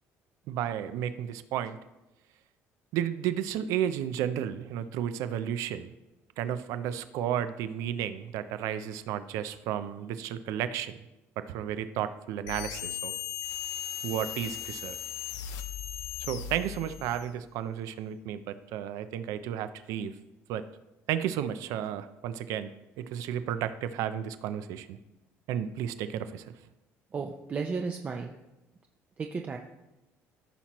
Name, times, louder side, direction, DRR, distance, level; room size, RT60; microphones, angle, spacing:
voice 1, 0.5-1.8 2.9-5.9 6.4-11.0 11.4-13.1 14.0-15.0 16.2-20.1 20.5-20.6 21.1-22.7 23.0-25.0 25.5-26.5, right 10 dB, 80° right, 12 dB, 0.5 m, -33 dB
sound 1, 12.5-17.3, left 10 dB, 85° left, 0.6 m, -37 dB
voice 2, 27.1-28.3 29.2-29.6, right 4 dB, 30° right, 3 dB, 0.5 m, -33 dB
14.5 x 5.8 x 3.0 m, 0.97 s
cardioid pair, 130°, 5 cm